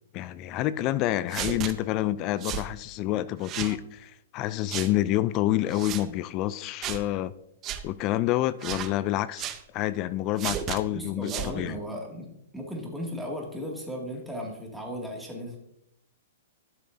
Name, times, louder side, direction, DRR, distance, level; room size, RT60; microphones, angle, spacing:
voice 1, 0.1-7.3 7.8-11.8, left 14 dB, 35° left, 0.3 m, -28 dB
sound 1, 1.3-1.7 2.4-2.7 3.4-3.8 4.7-4.9 5.7-6.0 6.8-7.0 7.6-7.8 8.6-8.9 9.4-9.6 10.4-10.8 11.2-11.5, right 10 dB, 30° right, 0.6 m, -33 dB
voice 2, 10.9-15.6, equal, ahead, 2.2 m, -36 dB
12.0 x 6.6 x 2.7 m
hypercardioid pair, 125°, 0 cm